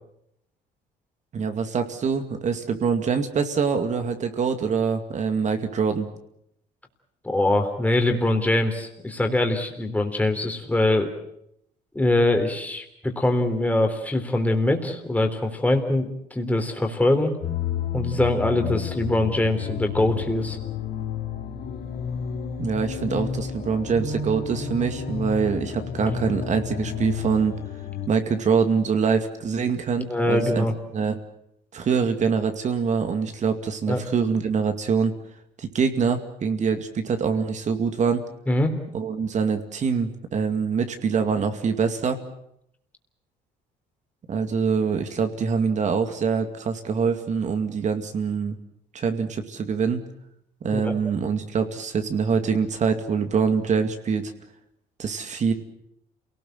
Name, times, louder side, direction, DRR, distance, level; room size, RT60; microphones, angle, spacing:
voice 1, 1.3-6.1 22.6-27.6 28.1-30.6 30.9-31.2 31.7-35.1 35.6-38.2 38.9-42.2 44.3-48.6 48.9-50.0 50.6-54.3 55.0-55.5, right 5 dB, 45° right, 7 dB, 2.3 m, -24 dB
voice 2, 7.2-11.1 12.0-17.3 17.9-20.6 30.1-30.7 33.9-34.0 38.5-38.7 50.7-51.0, left 1 dB, 10° left, 4 dB, 3.6 m, -23 dB
sound 1, 17.4-28.1, left 7 dB, 65° left, 3.2 m, -31 dB
28.0 x 18.5 x 7.9 m, 0.78 s
cardioid pair, 110°, 17 cm